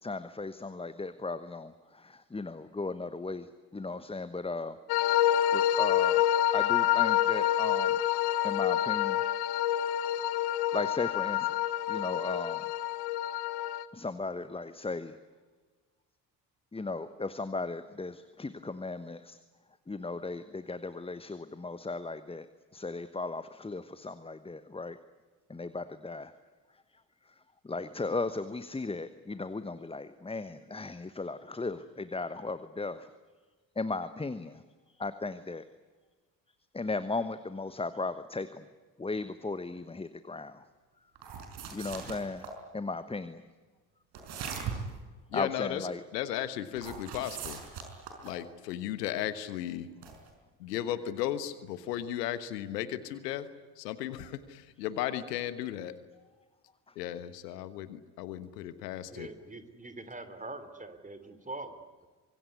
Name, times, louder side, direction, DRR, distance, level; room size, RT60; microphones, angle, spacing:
voice 1, 0.0-4.8 5.5-6.3 6.5-8.0 8.4-9.2 10.7-11.6 11.9-12.7 13.9-15.2 16.7-19.4 19.9-22.5 22.7-25.0 25.5-26.3 26.7-33.1 33.7-35.7 36.7-38.7 39.0-40.7 41.7-43.4 45.3-46.0 48.2-48.3 56.9-57.0, left 3 dB, 10° left, 13 dB, 1.1 m, -36 dB
sound 1, 4.9-13.8, left 12 dB, 50° left, 1.2 m, -27 dB
sound 2, 41.2-42.6 44.1-45.0 46.8-48.4 50.0-50.3, right 6 dB, 50° right, 5.2 m, -40 dB
voice 2, 45.3-45.8 46.1-47.6 48.2-49.9 50.6-53.5 53.8-55.9 57.0-59.3, left 12 dB, 70° left, 14 dB, 1.4 m, -35 dB
voice 3, 59.0-62.1, right 2 dB, 15° right, 10 dB, 3.1 m, -44 dB
25.0 x 22.5 x 9.8 m, 1.3 s
figure-of-eight pair, 50°, 50 cm